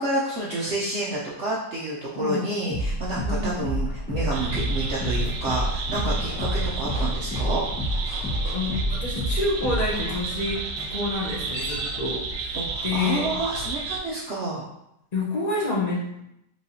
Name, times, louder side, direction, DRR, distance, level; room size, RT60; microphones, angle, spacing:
voice 1, 0.0-7.6 12.5-14.7, right 2 dB, 65° right, -5 dB, 0.7 m, -29 dB
sound 1, 2.7-12.3, equal, 5° left, 0.9 m, -29 dB
sound 2, 4.3-14.0, right 4 dB, 90° right, 1.3 m, -32 dB
sound 3, 5.4-10.2 11.2-12.1, left 1 dB, 80° left, 1.8 m, -42 dB
voice 2, 8.5-10.6 10.9-12.6 12.8-13.3 15.1-16.2, left 2 dB, 40° left, -5 dB, 0.6 m, -28 dB
4.7 x 3.2 x 2.7 m, 0.82 s
omnidirectional pair, 1.9 m